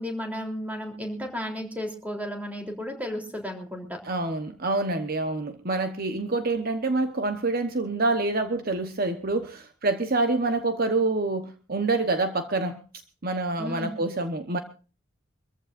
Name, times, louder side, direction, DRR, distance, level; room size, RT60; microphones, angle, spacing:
voice 1, 0.0-4.0 13.6-13.9, equal, 10° right, 2 dB, 3.4 m, -33 dB
voice 2, 4.0-12.8 13.2-14.6, right 2 dB, 45° right, 8 dB, 1.1 m, -26 dB
24.5 x 14.5 x 2.6 m, 0.36 s
head